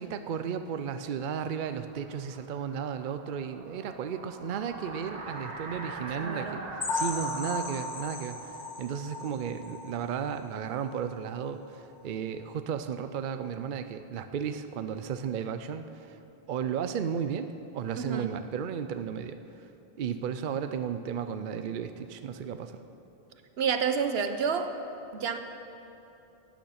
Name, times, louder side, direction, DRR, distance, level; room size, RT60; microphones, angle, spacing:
voice 1, 0.0-6.6 6.9-16.2 16.5-19.4 20.0-22.8, right 7 dB, 60° right, 9 dB, 0.7 m, -34 dB
sound 1, 1.7-10.2, right 2 dB, 45° right, 1.2 m, -43 dB
voice 2, 6.2-6.6 18.0-18.3 23.6-24.7 25.1-25.4, right 6 dB, 80° right, 8 dB, 1.0 m, -29 dB
sound 2, 6.8-10.4 10.8-11.0 11.3-11.4 11.9-12.0, left 3 dB, 55° left, 1.3 m, -36 dB
16.0 x 9.3 x 5.7 m, 2.9 s
omnidirectional pair, 1.0 m